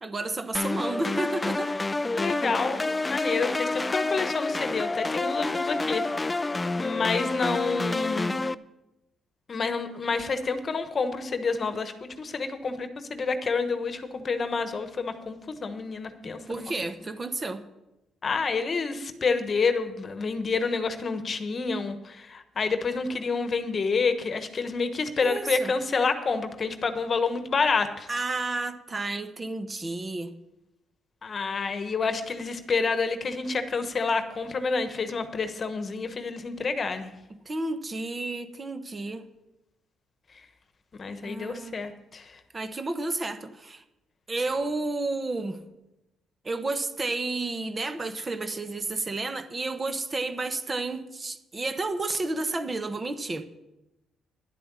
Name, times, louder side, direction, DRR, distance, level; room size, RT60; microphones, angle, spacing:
voice 1, 0.0-1.7 16.5-17.6 25.2-25.7 28.1-30.3 37.3-39.3 41.2-41.8 42.5-43.8 44.3-45.6 46.4-53.4, right 2 dB, 30° right, 1.1 m, -31 dB
sound 1, 0.5-8.5, left 2 dB, 20° left, 0.4 m, -28 dB
voice 2, 2.1-2.8 3.1-6.4 6.8-8.4 9.5-16.7 18.2-28.1 31.2-37.1 40.9-42.4, left 4 dB, 40° left, 1.2 m, -28 dB
11.0 x 8.6 x 6.9 m
cardioid pair, 90°, 0 cm